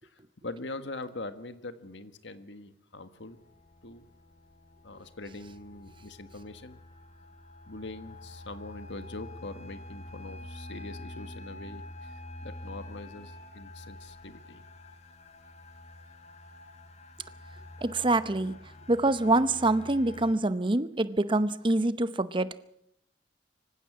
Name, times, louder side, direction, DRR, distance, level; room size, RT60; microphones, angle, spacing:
voice 1, 0.0-3.4 3.8-4.1 4.8-6.8 7.6-14.6, left 2 dB, 80° left, 10 dB, 1.6 m, -43 dB
sound 1, 3.2-20.3, left 1 dB, 35° left, 1.5 m, -47 dB
voice 2, 17.8-18.5 18.9-22.5, right 2 dB, 25° right, 13 dB, 0.8 m, -25 dB
25.0 x 15.5 x 7.4 m, 0.77 s
head